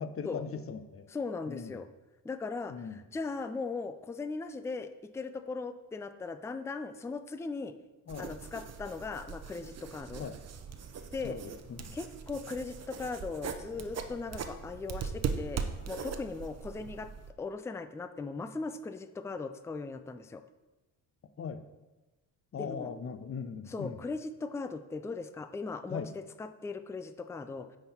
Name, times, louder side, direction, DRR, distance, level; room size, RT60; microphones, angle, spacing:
voice 1, 0.0-1.1 1.5-1.7 2.7-2.9 8.1-8.3 10.2-10.4 11.2-11.4 11.7-12.0 21.4-21.6 22.5-24.0 25.9-26.1, left 6 dB, 35° left, 11 dB, 0.7 m, -39 dB
voice 2, 1.1-1.9 2.2-7.7 8.2-10.3 11.1-11.4 11.9-17.1 17.4-20.4 22.6-22.9 23.7-27.7, left 4 dB, 5° left, 10 dB, 0.4 m, -38 dB
sound 1, 8.1-17.3, right 6 dB, 40° right, 0.8 m, -40 dB
9.5 x 3.9 x 4.4 m, 1.1 s
supercardioid pair, 75°, 41 cm